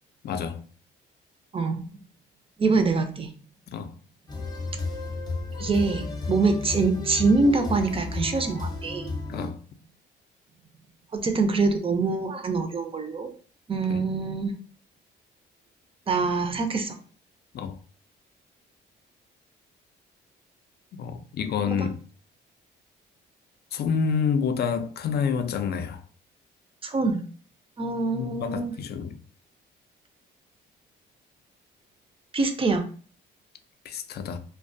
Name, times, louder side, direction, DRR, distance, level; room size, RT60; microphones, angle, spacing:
voice 1, 0.2-0.6 3.7-3.9 9.3-9.6 13.9-14.0 17.5-17.8 20.9-22.0 23.7-26.0 28.1-29.2 33.8-34.4, left 6 dB, 55° left, 0.4 m, -28 dB
voice 2, 1.5-2.0 2.6-3.3 5.6-9.1 11.1-13.3 13.7-14.5 16.1-17.0 21.7-21.9 26.8-27.2 27.8-28.7 32.3-32.9, right 3 dB, 30° right, 0.4 m, -25 dB
sound 1, 4.3-9.5, left 3 dB, 20° left, 0.7 m, -33 dB
2.2 x 2.2 x 2.5 m
cardioid pair, 90°, 20 cm